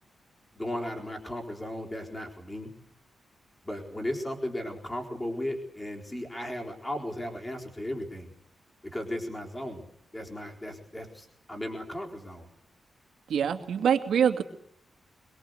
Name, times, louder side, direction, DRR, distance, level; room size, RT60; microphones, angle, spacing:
voice 1, 0.5-2.7 3.6-8.3 8.8-9.9 10.1-12.5, left 1 dB, 15° left, 0 dB, 4.1 m, -36 dB
voice 2, 13.3-14.4, right 8 dB, 90° right, 6 dB, 2.6 m, -24 dB
24.5 x 22.0 x 8.1 m, 0.66 s
wide cardioid pair, 165°, 0 cm